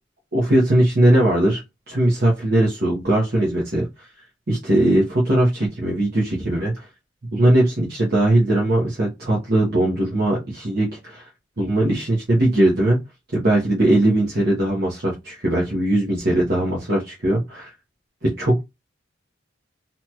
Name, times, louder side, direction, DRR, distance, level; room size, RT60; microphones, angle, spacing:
voice 1, 0.3-1.6 1.9-4.1 4.5-6.9 7.3-11.3 11.6-13.0 13.3-17.7 18.2-18.6, right 1 dB, 55° right, 1.0 m, -19 dB
2.9 x 2.8 x 2.3 m
head